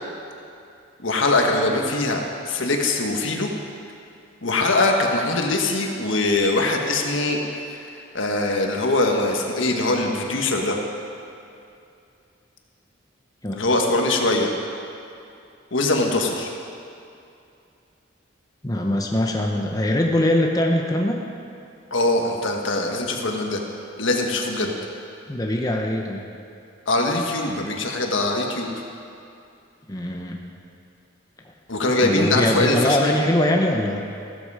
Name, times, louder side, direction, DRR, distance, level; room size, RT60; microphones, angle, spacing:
voice 1, 1.0-3.5 4.4-7.4 7.7-10.8 13.5-14.5 15.7-16.5 21.9-23.6 24.0-24.7 26.9-28.8 31.7-33.1, left 2 dB, 80° left, 2 dB, 1.6 m, -22 dB
voice 2, 18.6-21.2 25.3-26.2 29.9-30.4 32.0-34.0, left 1 dB, 20° left, 1 dB, 0.9 m, -22 dB
15.0 x 13.0 x 4.9 m, 2.5 s
head